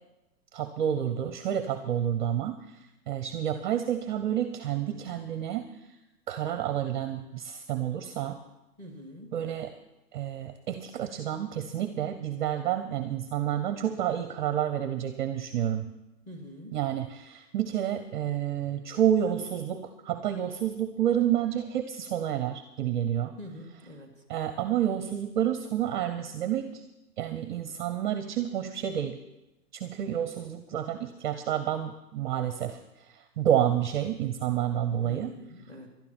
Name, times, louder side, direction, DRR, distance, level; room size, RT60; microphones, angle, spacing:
voice 1, 0.5-2.6 3.1-5.7 6.3-8.4 9.3-9.7 10.1-15.9 16.7-23.3 24.3-26.8 27.2-29.2 29.7-32.8 33.1-35.4, right 10 dB, 30° right, 9 dB, 0.7 m, -29 dB
voice 2, 8.8-9.3 16.3-16.8 23.4-24.1 35.0-35.9, equal, 15° left, 3 dB, 2.3 m, -45 dB
19.5 x 12.0 x 4.4 m, 0.98 s
hypercardioid pair, 150°, 49 cm